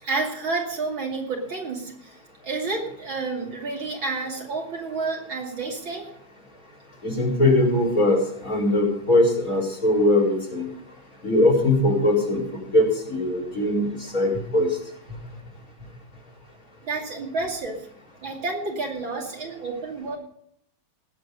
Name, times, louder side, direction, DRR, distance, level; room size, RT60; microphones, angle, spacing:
voice 1, 0.0-2.2 2.4-6.1 16.8-17.9 18.2-20.2, right 3 dB, 60° right, 0 dB, 3.3 m, -30 dB
voice 2, 7.0-8.2 8.4-10.7 11.2-13.9 14.1-14.7, left 1 dB, 35° left, -2 dB, 5.1 m, -21 dB
19.0 x 8.0 x 5.3 m, 0.70 s
omnidirectional pair, 2.4 m